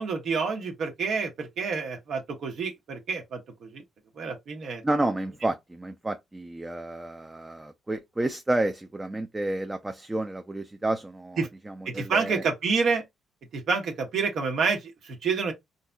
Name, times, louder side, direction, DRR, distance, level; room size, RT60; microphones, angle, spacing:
voice 1, 0.0-3.8 4.2-4.8 11.4-11.5 11.8-13.0 13.5-15.5, right 5 dB, 70° right, 1.2 m, -28 dB
voice 2, 4.8-12.4, right 2 dB, 15° right, 0.5 m, -30 dB
3.9 x 2.7 x 2.3 m
cardioid pair, 90°, 0 cm